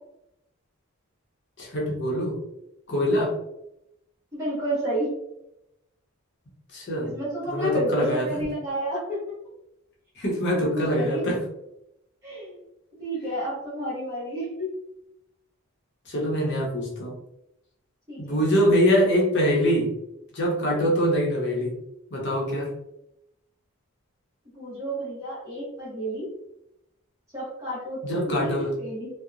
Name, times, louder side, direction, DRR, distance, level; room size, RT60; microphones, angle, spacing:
voice 1, 1.6-2.4 2.9-3.4 6.7-7.1 7.5-8.4 10.2-11.4 16.1-17.2 18.2-19.9 20.3-21.8 22.1-22.7 28.0-28.8, equal, 50° left, -2 dB, 0.7 m, -24 dB
voice 2, 4.3-5.1 6.9-9.2 10.5-11.2 12.2-12.6 13.0-14.7 18.1-18.4 24.5-26.3 27.3-29.1, right 1 dB, 15° right, -10 dB, 0.8 m, -30 dB
2.8 x 2.0 x 2.4 m, 0.83 s
head